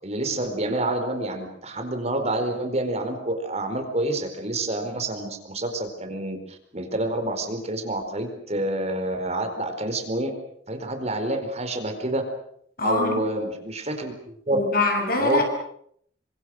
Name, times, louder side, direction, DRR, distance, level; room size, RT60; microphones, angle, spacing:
voice 1, 0.0-10.3 10.7-12.3 12.8-14.6 15.2-15.4, right 1 dB, 40° right, 7 dB, 4.5 m, -28 dB
voice 2, 12.8-13.2 14.5-15.4, left 3 dB, 55° left, 3 dB, 7.8 m, -23 dB
30.0 x 25.0 x 6.4 m, 0.67 s
head